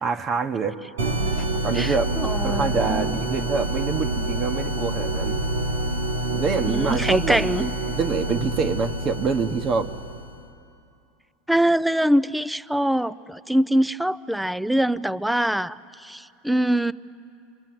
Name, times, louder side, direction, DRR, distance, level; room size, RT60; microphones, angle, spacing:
voice 1, 0.0-0.8 1.6-2.1 2.4-5.4 6.3-9.9, right 5 dB, 40° right, 6 dB, 1.2 m, -26 dB
sound 1, 1.0-10.3, right 2 dB, 90° right, 3.2 m, -27 dB
voice 2, 1.7-3.2 6.7-7.7 11.5-16.9, right 1 dB, 5° right, 17 dB, 0.6 m, -23 dB
27.0 x 23.5 x 7.7 m, 2.5 s
hypercardioid pair, 100°, 0 cm